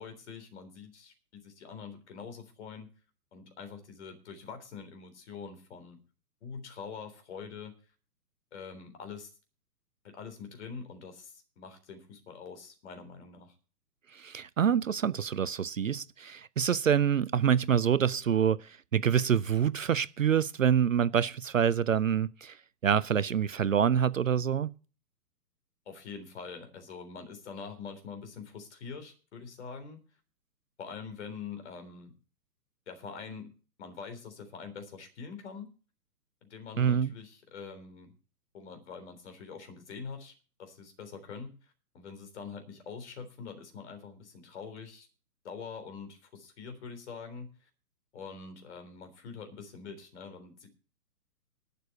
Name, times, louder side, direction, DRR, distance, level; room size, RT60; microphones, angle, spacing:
voice 1, 0.0-2.9 3.3-6.0 6.4-7.7 8.5-9.3 10.0-13.5 25.9-30.0 30.8-32.1 32.9-33.5 33.8-35.7 36.5-38.1 38.5-45.1 45.4-47.7 48.1-50.7, left 5 dB, 45° left, 3.8 m, -44 dB
voice 2, 14.1-24.7 36.8-37.1, right 8 dB, 55° right, 0.5 m, -26 dB
12.0 x 6.8 x 8.3 m
figure-of-eight pair, 130°, 48 cm